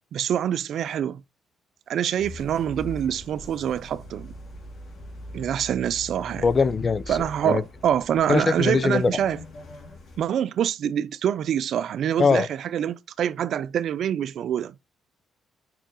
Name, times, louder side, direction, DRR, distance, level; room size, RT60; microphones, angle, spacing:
voice 1, 0.1-1.2 1.9-4.3 5.3-6.4 7.1-9.4 10.2-14.7, right 9 dB, 70° right, 0.4 m, -25 dB
sound 1, 2.2-10.2, left 1 dB, 60° left, 3.0 m, -42 dB
voice 2, 6.4-7.2 7.4-7.6 8.3-9.2 12.2-12.5, left 4 dB, 35° left, 0.5 m, -21 dB
6.8 x 5.6 x 3.0 m
cardioid pair, 90°, 0 cm